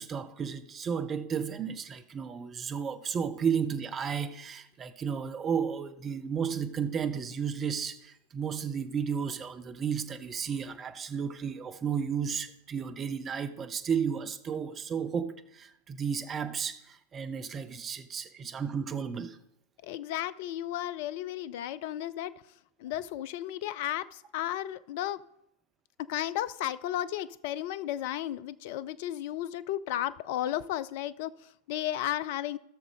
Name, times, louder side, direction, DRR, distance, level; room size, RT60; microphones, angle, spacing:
voice 1, 0.0-19.4, right 7 dB, 25° right, 0.8 m, -33 dB
voice 2, 19.8-22.4 22.8-25.2 26.0-32.6, left 12 dB, 50° left, 0.4 m, -34 dB
17.0 x 6.6 x 3.5 m
figure-of-eight pair, 90°, 0 cm